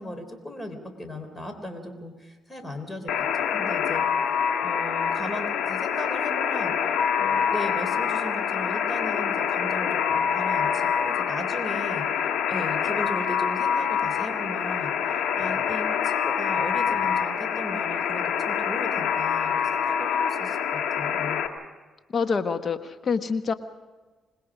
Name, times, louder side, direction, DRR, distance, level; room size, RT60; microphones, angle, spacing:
voice 1, 0.0-4.1 4.6-6.7 7.2-12.1 12.5-21.4, left 1 dB, 15° left, 6 dB, 3.8 m, -37 dB
Alarm, 3.1-21.5, left 7 dB, 80° left, 1.8 m, -26 dB
voice 2, 22.1-23.5, left 5 dB, 45° left, 9 dB, 1.2 m, -26 dB
26.5 x 20.5 x 5.0 m, 1.3 s
cardioid pair, 90°, 0 cm